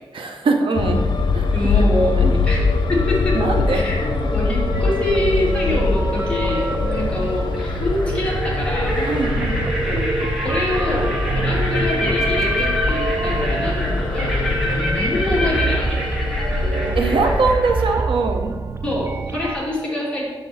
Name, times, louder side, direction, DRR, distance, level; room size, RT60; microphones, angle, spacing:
voice 1, 0.1-1.0 1.3-1.5 2.2-2.4 3.3-3.8 9.1-9.7 17.0-18.6, right 3 dB, 85° right, 4 dB, 0.8 m, -21 dB
sound 1, 0.7-17.6, left 3 dB, 60° left, 0.9 m, -23 dB
voice 2, 1.5-3.4 3.7-9.0 9.9-10.1 10.4-14.4 14.7-16.0 18.8-20.3, left 1 dB, 15° left, -6 dB, 2.3 m, -25 dB
sound 2, 4.7-19.6, right 4 dB, 30° right, 0.3 m, -27 dB
sound 3, 5.1-5.6 7.1-7.2 7.5-18.0, left 1 dB, ahead, 1.6 m, -28 dB
6.8 x 6.5 x 4.3 m, 1.3 s
wide cardioid pair, 150°, 9 cm